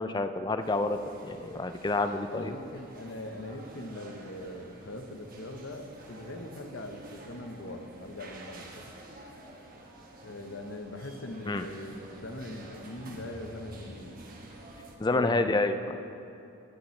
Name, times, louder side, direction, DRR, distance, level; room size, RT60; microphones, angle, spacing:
voice 1, 0.0-2.5 11.5-11.6 15.0-15.9, left 2 dB, 20° left, 9 dB, 0.4 m, -28 dB
sound 1, 0.6-15.0, right 1 dB, 40° right, 1.3 m, -49 dB
voice 2, 2.3-8.9 10.2-14.2 15.1-15.6, left 1 dB, 55° left, 5 dB, 1.0 m, -41 dB
20.5 x 9.9 x 3.2 m, 2.8 s
head